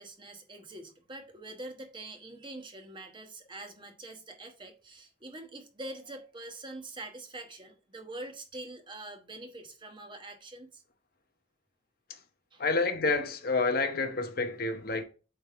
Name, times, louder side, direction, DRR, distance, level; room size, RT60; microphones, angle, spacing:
voice 1, 0.0-10.8 12.5-12.6, right 2 dB, 25° right, 1.1 m, -44 dB
voice 2, 12.6-15.0, left 3 dB, 50° left, 0.9 m, -29 dB
8.0 x 3.5 x 4.2 m
head